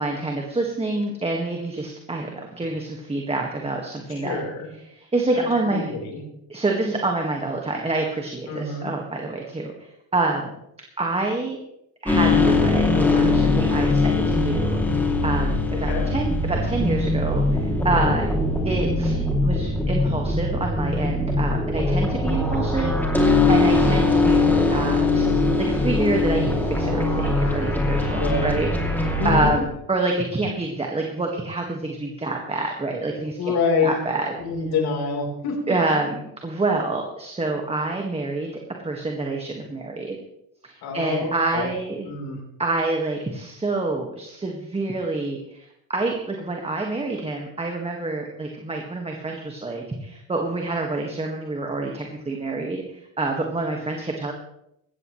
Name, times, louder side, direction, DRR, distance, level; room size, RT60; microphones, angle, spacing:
voice 1, 0.0-4.4 4.9-5.9 6.5-10.6 11.0-11.6 12.0-18.2 18.6-33.5 33.8-34.4 35.7-38.5 38.8-40.2 40.6-42.1 42.6-54.3, right 2 dB, 15° right, 1 dB, 1.8 m, -27 dB
voice 2, 4.2-4.7 5.3-6.2 8.5-8.9 15.9-16.1 17.9-18.2 22.2-22.7 28.1-28.5 29.2-29.6 33.4-33.9 34.4-35.7 40.8-41.7 42.0-42.4, left 4 dB, 65° left, 1 dB, 4.2 m, -27 dB
sound 1, 12.1-29.6, left 2 dB, 5° left, 2.8 m, -21 dB
17.5 x 13.5 x 3.2 m, 0.79 s
cardioid pair, 115°, 40 cm